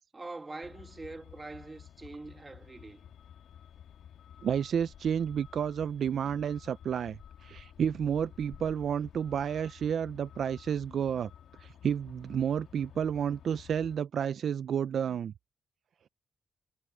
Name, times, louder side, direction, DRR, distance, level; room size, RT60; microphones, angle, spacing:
voice 1, 0.1-3.0, right 3 dB, 20° right, 1.7 m, -44 dB
Truck, 0.6-14.0, left 9 dB, 85° left, 2.3 m, -52 dB
voice 2, 4.4-11.3 11.6-15.3, right 8 dB, 60° right, 0.4 m, -31 dB
cardioid pair, 125°, 0 cm